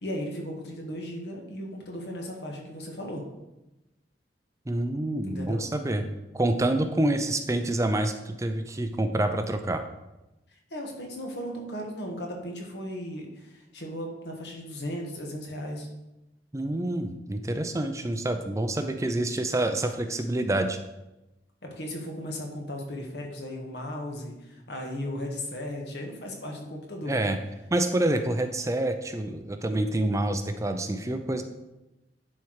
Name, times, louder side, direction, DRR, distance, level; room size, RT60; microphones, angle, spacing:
voice 1, 0.0-3.2 5.2-5.7 10.5-15.9 21.6-27.3, equal, 65° left, 1 dB, 1.7 m, -36 dB
voice 2, 4.7-6.1 6.3-9.8 16.5-20.8 27.1-27.4 27.7-31.4, right 1 dB, 20° right, 7 dB, 0.5 m, -27 dB
10.5 x 4.5 x 4.7 m, 0.97 s
head